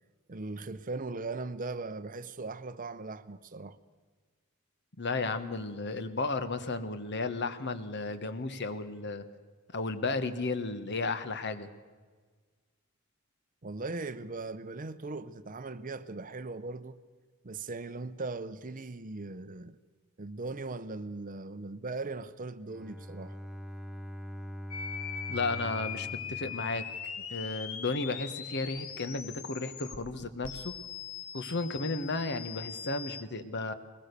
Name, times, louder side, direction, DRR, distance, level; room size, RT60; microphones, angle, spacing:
voice 1, 0.3-3.8 13.6-17.0 17.4-19.8 20.2-23.4, right 3 dB, 40° right, 0.7 m, -39 dB
voice 2, 5.0-9.2 9.7-11.7 25.3-26.8 27.3-30.7 31.3-33.7, left 3 dB, 55° left, 1.3 m, -34 dB
Bowed string instrument, 22.7-27.5, equal, ahead, 0.7 m, -43 dB
sound 1, 24.7-30.0 30.4-33.2, left 7 dB, 75° left, 1.6 m, -41 dB
21.5 x 20.5 x 6.8 m
head